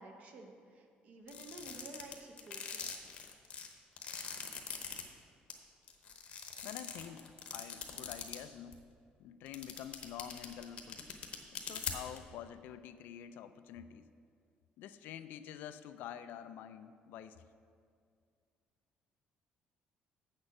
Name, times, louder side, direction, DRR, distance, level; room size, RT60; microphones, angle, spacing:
voice 1, 0.0-2.9, right 2 dB, 45° right, 4 dB, 0.9 m, -52 dB
sound 1, 1.3-5.0 5.5-5.6 5.9-8.4 8.7-8.8 9.5-12.2, left 7 dB, 40° left, 0.9 m, -42 dB
voice 2, 6.6-8.8 9.2-11.0 11.5-14.1 14.8-17.4, left 10 dB, 75° left, 11 dB, 0.4 m, -48 dB
7.8 x 6.5 x 5.9 m, 2.2 s
cardioid pair, 170°, 3 cm